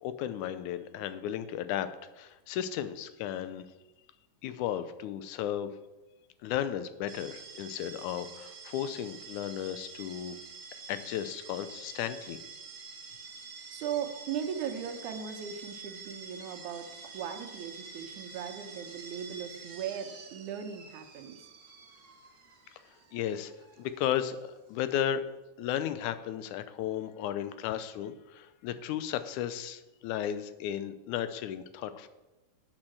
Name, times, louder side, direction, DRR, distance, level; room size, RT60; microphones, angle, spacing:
voice 1, 0.0-1.9 2.2-3.7 4.4-5.7 6.4-10.4 10.9-12.4 23.1-23.5 23.8-25.2 25.6-32.1, left 10 dB, 85° left, 12 dB, 2.1 m, -34 dB
sound 1, 7.1-24.9, right 5 dB, 55° right, 1.0 m, -48 dB
voice 2, 13.7-21.5, right 8 dB, 85° right, 4 dB, 2.5 m, -38 dB
8.9 x 7.5 x 6.2 m, 1.1 s
omnidirectional pair, 3.4 m